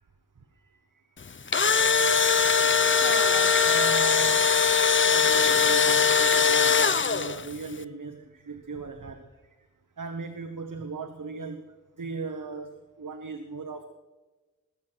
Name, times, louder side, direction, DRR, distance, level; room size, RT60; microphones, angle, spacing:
voice 1, 0.6-0.9 2.9-4.5 5.1-9.7 10.0-13.8, right 4 dB, 90° right, 6 dB, 1.2 m, -37 dB
Engine / Drill, 1.3-7.5, left 5 dB, 40° left, 0.6 m, -21 dB
20.0 x 7.7 x 6.2 m, 1.2 s
wide cardioid pair, 65°, 31 cm